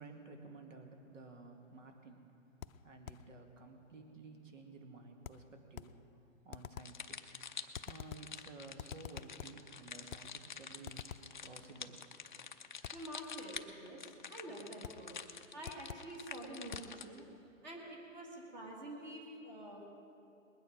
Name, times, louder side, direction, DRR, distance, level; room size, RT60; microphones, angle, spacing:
voice 1, 0.0-2.2 2.8-5.9 6.4-7.5 7.9-11.1 11.4-12.0 14.5-14.7, right 3 dB, 70° right, 4 dB, 2.1 m, -53 dB
sound 1, 2.6-3.3 5.2-6.0 6.5-7.0 7.7-8.4 8.8-9.7 10.1-10.4 10.8-11.4 12.8-13.1 14.8-15.1 15.6-16.2 16.7-17.0, left 9 dB, 80° left, 0.6 m, -49 dB
sound 2, 6.8-17.2, left 6 dB, 40° left, 0.5 m, -48 dB
voice 2, 12.9-15.2 15.5-17.3 17.6-19.9, right 1 dB, 35° right, 0 dB, 1.9 m, -48 dB
20.5 x 9.4 x 5.1 m, 2.8 s
hypercardioid pair, 165°, 40 cm